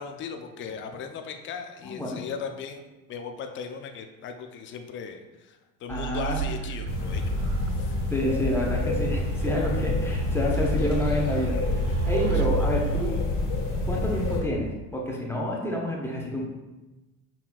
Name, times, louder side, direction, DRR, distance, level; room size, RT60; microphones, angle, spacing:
voice 1, 0.0-2.8 3.1-7.5 7.8-7.9 12.6-12.7, left 6 dB, 30° left, 6 dB, 0.4 m, -37 dB
voice 2, 1.8-2.3 5.9-6.4 8.1-11.6 12.1-13.1 13.9-16.5, left 1 dB, 5° left, -2 dB, 1.0 m, -29 dB
sound 1, 5.9-12.5, right 10 dB, 45° right, 0.5 m, -37 dB
sound 2, 6.9-14.4, left 1 dB, 55° left, 1.1 m, -27 dB
5.6 x 2.8 x 2.3 m, 1.1 s
hypercardioid pair, 70°, 40 cm